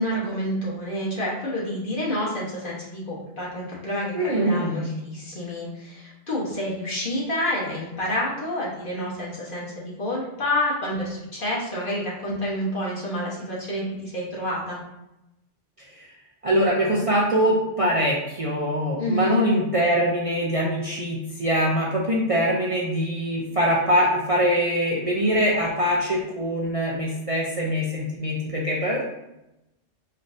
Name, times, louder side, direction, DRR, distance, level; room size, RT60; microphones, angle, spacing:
voice 1, 0.0-14.8 19.0-19.4, left 1 dB, 50° left, -5 dB, 1.4 m, -28 dB
voice 2, 4.1-4.9 15.9-16.1 16.4-29.0, equal, 35° right, -4 dB, 0.6 m, -23 dB
5.5 x 3.1 x 2.6 m, 0.91 s
omnidirectional pair, 1.2 m